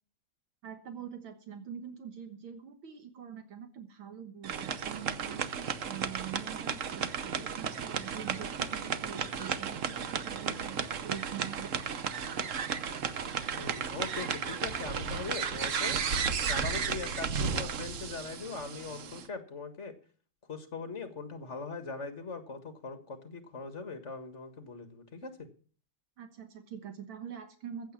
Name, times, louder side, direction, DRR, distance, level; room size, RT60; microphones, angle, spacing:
voice 1, 0.6-5.5 5.8-12.1 26.2-27.9, right 8 dB, 75° right, 8 dB, 2.0 m, -44 dB
sound 1, 4.4-19.3, right 6 dB, 50° right, 1.0 m, -34 dB
voice 2, 13.5-16.0 16.5-19.9 20.5-25.4, left 4 dB, 35° left, 9 dB, 1.8 m, -41 dB
15.0 x 8.0 x 7.4 m, 0.42 s
omnidirectional pair, 2.3 m